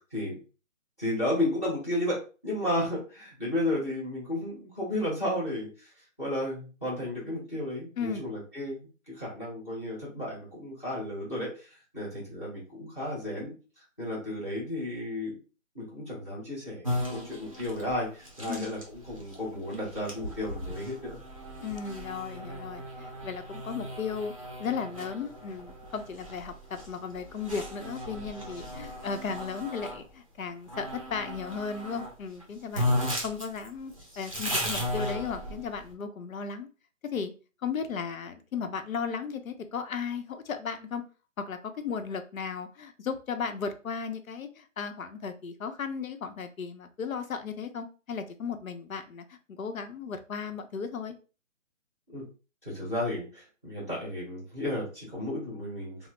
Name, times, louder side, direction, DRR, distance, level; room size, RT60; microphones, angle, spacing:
voice 1, 1.0-2.2 2.4-5.9 6.2-13.5 14.0-15.3 15.7-21.2 52.1-52.2 52.6-56.1, left 1 dB, 10° left, -4 dB, 0.7 m, -33 dB
sound 1, 16.8-30.0 30.7-32.1 32.4-32.5 32.7-35.8, equal, 25° right, 0.5 m, -36 dB
voice 2, 21.6-24.3 24.6-26.5 26.9-36.7 37.1-37.3 37.6-41.0 41.5-51.1, left 6 dB, 80° left, 7 dB, 0.8 m, -35 dB
3.0 x 2.0 x 3.1 m, 0.34 s
hypercardioid pair, 165°, 40 cm